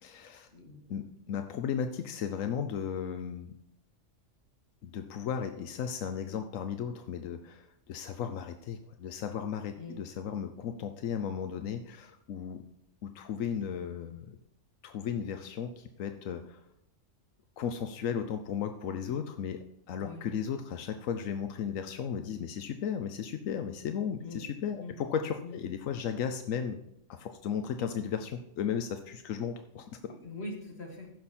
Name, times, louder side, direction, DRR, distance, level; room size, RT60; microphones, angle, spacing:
voice 1, 0.0-0.5 0.9-3.5 4.8-12.6 13.0-14.4 14.8-16.6 17.6-26.8 27.1-30.0, left 7 dB, 90° left, 8 dB, 1.1 m, -35 dB
voice 2, 30.0-31.1, left 2 dB, 55° left, 1 dB, 2.2 m, -42 dB
15.0 x 6.5 x 4.3 m, 0.79 s
omnidirectional pair, 1.3 m